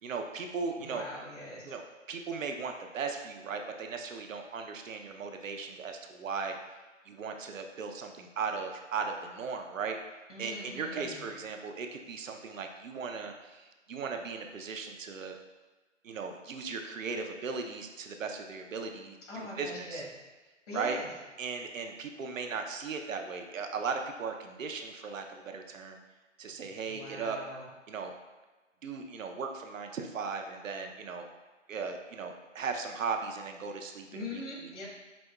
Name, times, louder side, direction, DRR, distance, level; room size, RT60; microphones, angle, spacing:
voice 1, 0.0-1.0 1.6-6.6 7.1-10.0 10.4-15.4 16.0-20.0 20.7-21.0 21.4-26.0 26.4-27.4 27.9-28.1 28.8-31.3 31.7-34.4, right 5 dB, 80° right, 4 dB, 0.6 m, -37 dB
voice 2, 0.8-1.7 10.3-11.3 19.3-20.1 20.7-21.1 26.9-27.7 34.1-34.9, left 2 dB, 65° left, -3 dB, 1.5 m, -42 dB
5.1 x 2.8 x 2.2 m, 1.3 s
figure-of-eight pair, 140°, 38 cm